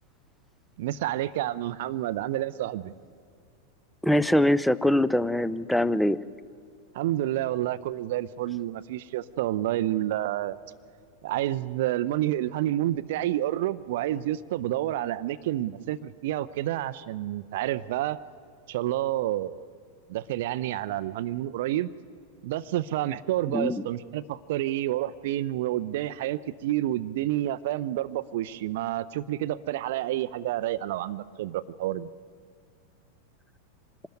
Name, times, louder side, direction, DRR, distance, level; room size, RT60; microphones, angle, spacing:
voice 1, 0.8-2.9 6.9-10.6 11.2-18.2 18.7-19.6 20.1-21.9 22.4-32.1, right 14 dB, 55° right, 14 dB, 0.5 m, -29 dB
voice 2, 4.0-6.2 23.5-23.8, left 1 dB, ahead, 17 dB, 0.5 m, -23 dB
25.0 x 13.0 x 9.3 m, 2.3 s
figure-of-eight pair, 90°, 0 cm